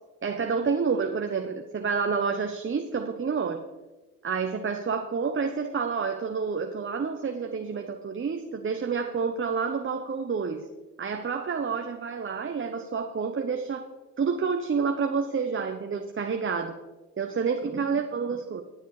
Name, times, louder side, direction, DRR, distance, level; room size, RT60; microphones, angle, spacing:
voice 1, 0.2-3.6 4.2-10.7 11.0-13.9 14.2-16.7 17.2-18.6, right 5 dB, 35° right, 6 dB, 0.9 m, -29 dB
17.5 x 9.4 x 3.2 m, 1.1 s
supercardioid pair, 50°, 36 cm